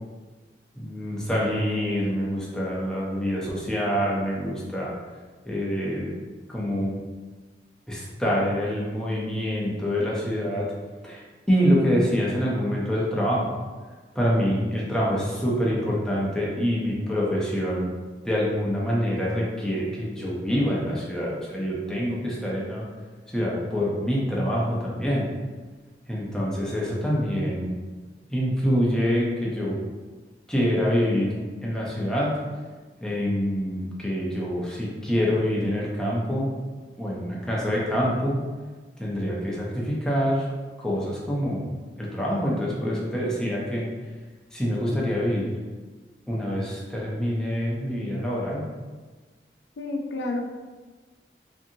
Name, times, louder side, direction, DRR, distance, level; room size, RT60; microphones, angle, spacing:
voice 1, 0.8-4.9 5.5-6.1 6.5-7.0 7.9-10.7 11.0-13.5 14.1-17.9 18.2-22.9 23.3-25.3 26.1-27.8 28.3-29.8 30.5-31.3 31.6-32.4 33.0-36.5 37.0-38.4 39.0-40.5 40.8-41.6 42.0-43.9 44.5-45.5 46.3-48.6, equal, 5° left, -5 dB, 0.5 m, -26 dB
voice 2, 49.8-50.5, left 2 dB, 80° left, 2 dB, 0.4 m, -30 dB
2.6 x 2.6 x 2.6 m, 1.4 s
head